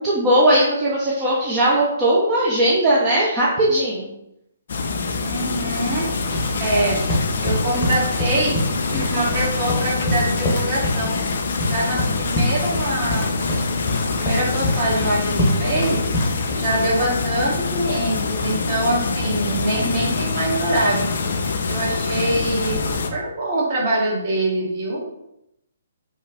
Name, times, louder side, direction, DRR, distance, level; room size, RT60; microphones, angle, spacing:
voice 1, 0.0-4.1, right 1 dB, 20° right, -6 dB, 0.6 m, -18 dB
sound 1, 4.7-23.1, left 4 dB, 55° left, 0.3 m, -25 dB
voice 2, 5.2-6.1 6.6-7.0 7.4-8.6 8.9-11.2 11.6-13.4 14.0-16.0 16.5-21.1 21.7-22.8 23.1-25.0, right 1 dB, 40° right, -5 dB, 1.2 m, -24 dB
sound 2, 6.0-16.5, left 1 dB, 25° left, 0.9 m, -26 dB
3.1 x 2.3 x 3.6 m, 0.82 s
figure-of-eight pair, 130°, 0 cm